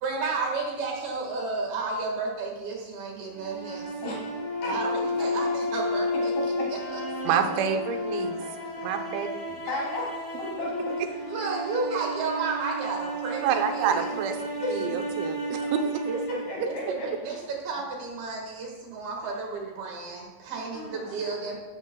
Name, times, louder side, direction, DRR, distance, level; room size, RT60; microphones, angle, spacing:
voice 1, 0.0-3.9 4.6-6.3 6.7-7.0 7.3-7.4 11.3-14.1 16.1-16.4 16.7-21.6, right 3 dB, 65° right, -1 dB, 3.3 m, -32 dB
sound 1, 3.3-17.5, left 1 dB, 25° left, 3.3 m, -32 dB
voice 2, 6.4-6.7 9.7-11.0 14.6-15.0 16.3-17.3 20.7-21.2, left 1 dB, 60° left, -4 dB, 4.8 m, -34 dB
voice 3, 7.3-8.4 8.8-9.3 13.4-14.4 14.7-15.8, right 7 dB, 80° right, 6 dB, 3.2 m, -27 dB
15.0 x 14.0 x 2.2 m, 1.3 s
omnidirectional pair, 5.3 m